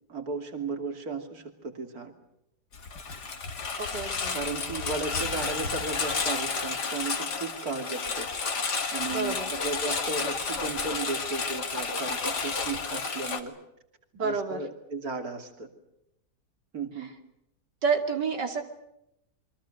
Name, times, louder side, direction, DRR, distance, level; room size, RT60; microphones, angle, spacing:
voice 1, 0.1-2.1 4.3-8.3 8.9-13.5 14.2-15.7 16.7-17.1, right 4 dB, 60° right, 5 dB, 3.3 m, -35 dB
Engine, 2.7-13.4, left 4 dB, 75° left, 2.8 m, -31 dB
voice 2, 3.8-4.3 9.1-9.5 14.1-14.6 17.8-18.6, right 5 dB, 90° right, 4 dB, 3.4 m, -29 dB
29.0 x 24.0 x 6.6 m, 0.82 s
omnidirectional pair, 1.8 m